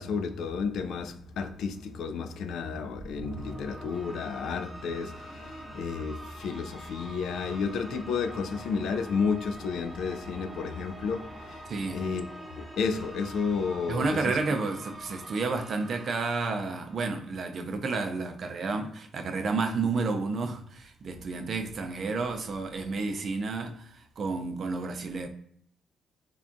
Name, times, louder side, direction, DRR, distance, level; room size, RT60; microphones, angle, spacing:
voice 1, 0.0-12.3 12.5-14.4, left 5 dB, 75° left, 0.3 m, -32 dB
sound 1, 3.0-17.3, right 1 dB, 20° right, 0.8 m, -45 dB
voice 2, 11.7-12.0 13.9-25.3, right 4 dB, 55° right, 0.5 m, -31 dB
3.4 x 2.2 x 2.5 m
cardioid pair, 90°, 0 cm